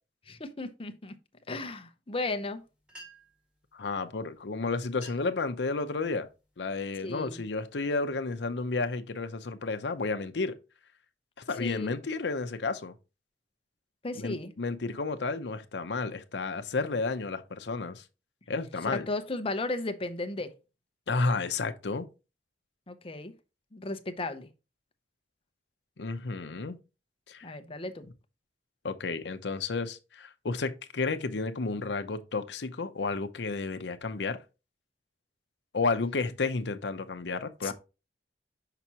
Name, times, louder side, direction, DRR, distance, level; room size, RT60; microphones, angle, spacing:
voice 1, 0.3-1.1 1.5-2.6 7.0-7.4 11.6-11.9 14.0-14.5 18.8-20.5 22.9-23.3 23.7-24.5 27.4-28.1 37.6-37.7, left 2 dB, 30° left, 0.7 m, -35 dB
sound 1, 2.6-2.7 2.9-3.5 4.4-4.5 4.9-5.4 5.9-6.3 6.9-7.2 7.7-8.9, right 1 dB, 5° right, 1.7 m, -53 dB
voice 2, 3.7-6.3 6.6-10.6 11.5-12.9 14.2-18.0 18.5-19.1 21.1-22.1 26.0-26.8 27.3-27.5 28.8-34.4 35.7-37.7, left 3 dB, 75° left, 0.7 m, -32 dB
5.9 x 5.8 x 2.8 m
head